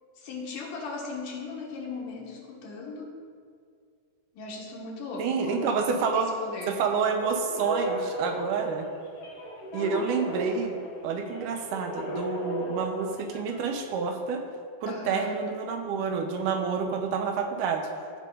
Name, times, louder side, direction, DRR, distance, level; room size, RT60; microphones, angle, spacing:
voice 1, 0.2-3.1 4.3-6.8 14.9-15.4, left 3 dB, 75° left, -2 dB, 2.8 m, -37 dB
voice 2, 5.2-6.3 6.7-8.9 9.7-10.8 11.0-14.4 14.8-17.9, right 5 dB, 80° right, 4 dB, 2.2 m, -28 dB
sound 1, 6.9-13.8, right 1 dB, 55° left, 1.1 m, -36 dB
15.0 x 5.3 x 3.7 m, 2.2 s
omnidirectional pair, 3.8 m